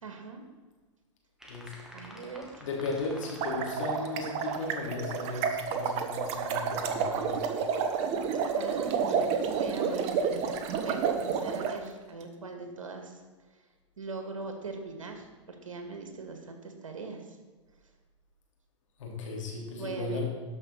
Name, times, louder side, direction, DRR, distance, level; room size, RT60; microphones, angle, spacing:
voice 1, 0.0-0.4 1.9-2.4 8.5-13.2 14.0-17.2 19.8-20.2, right 3 dB, 85° right, 4 dB, 2.1 m, -41 dB
sound 1, 1.4-6.9, equal, 5° right, 2.0 m, -51 dB
voice 2, 2.6-7.4 19.0-20.2, left 3 dB, 75° left, -1 dB, 3.5 m, -36 dB
sound 2, 3.2-11.7, right 6 dB, 40° right, 1.3 m, -30 dB
13.0 x 5.9 x 5.8 m, 1.3 s
hypercardioid pair, 110°, 16 cm